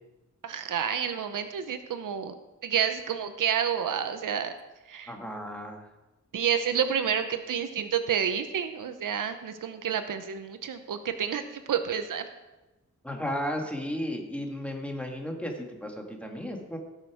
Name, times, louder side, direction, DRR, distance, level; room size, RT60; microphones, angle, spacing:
voice 1, 0.4-2.3 2.6-4.5 4.9-5.1 6.3-12.2, right 8 dB, 90° right, 9 dB, 0.8 m, -29 dB
voice 2, 5.1-5.8 13.0-16.8, equal, 5° left, 2 dB, 1.8 m, -34 dB
17.0 x 6.6 x 4.9 m, 1.1 s
wide cardioid pair, 140°, 31 cm